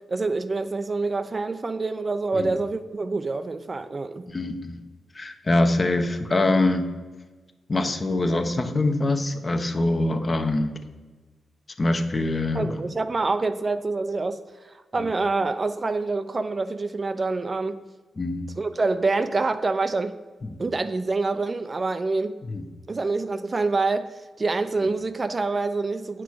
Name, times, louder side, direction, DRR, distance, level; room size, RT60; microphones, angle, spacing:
voice 1, 0.0-4.3 12.5-14.4 14.6-17.8 18.6-20.2 20.6-22.4 22.9-26.2, right 3 dB, 35° right, 0.5 m, -26 dB
voice 2, 4.3-4.8 5.1-6.9 7.7-10.7 11.8-12.8 15.0-15.1 18.2-18.4 22.4-22.6, left 2 dB, 35° left, 0.9 m, -24 dB
8.4 x 6.1 x 4.7 m
cardioid pair, 65°, 0 cm